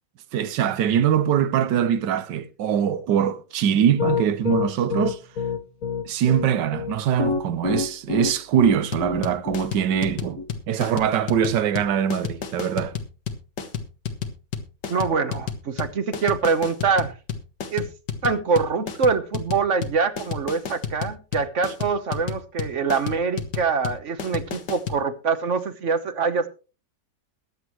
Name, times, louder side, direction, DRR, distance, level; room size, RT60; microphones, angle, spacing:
voice 1, 0.3-5.2 6.0-12.9, right 9 dB, 75° right, 1.5 m, -23 dB
Piano, 4.0-10.4, left 5 dB, 50° left, 1.6 m, -26 dB
sound 1, 8.9-25.0, left 7 dB, 70° left, 2.0 m, -31 dB
voice 2, 14.9-17.1 17.7-17.9 18.2-26.5, right 5 dB, 50° right, 1.2 m, -24 dB
21.5 x 8.1 x 3.1 m
omnidirectional pair, 1.9 m